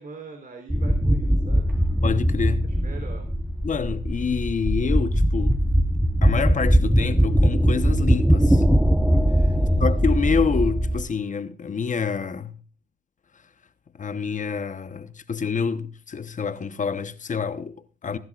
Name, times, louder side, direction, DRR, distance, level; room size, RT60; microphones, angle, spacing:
voice 1, 0.0-2.1 2.7-3.2 9.5-10.0, right 4 dB, 45° right, 3.5 m, -43 dB
sound 1, 0.7-11.0, equal, 5° right, 1.0 m, -20 dB
voice 2, 2.0-2.6 3.6-5.6 6.2-8.6 9.8-12.6 14.0-18.2, left 6 dB, 40° left, 1.1 m, -27 dB
22.5 x 12.0 x 2.5 m
cardioid pair, 90°, 20 cm